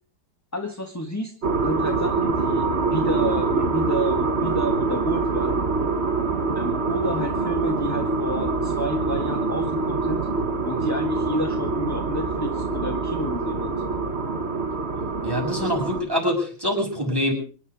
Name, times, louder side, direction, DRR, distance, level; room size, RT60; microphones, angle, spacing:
voice 1, 0.5-5.6 6.5-10.3 10.6-13.7, equal, 10° left, 4 dB, 1.5 m, -30 dB
sound 1, 1.4-16.0, right 3 dB, 35° right, 1.9 m, -25 dB
voice 2, 15.2-17.3, equal, 10° right, 2 dB, 6.7 m, -25 dB
26.0 x 11.0 x 4.8 m, 0.41 s
omnidirectional pair, 2.0 m